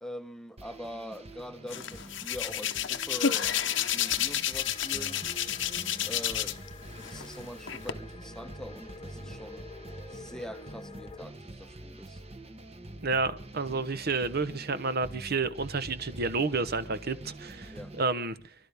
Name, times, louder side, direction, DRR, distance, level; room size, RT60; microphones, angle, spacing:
voice 1, 0.0-5.2 6.1-6.6 7.0-9.7 10.1-12.2 17.7-17.9, equal, 5° left, 0.9 m, -43 dB
sound 1, 0.6-18.0, right 1 dB, 30° right, 1.3 m, -46 dB
Hands, 1.7-6.7 7.0-7.9, left 10 dB, 70° left, 0.9 m, -30 dB
sound 2, 4.5-11.3, left 3 dB, 25° left, 1.1 m, -49 dB
voice 2, 13.0-18.4, right 3 dB, 55° right, 1.0 m, -30 dB
28.0 x 12.5 x 3.5 m
head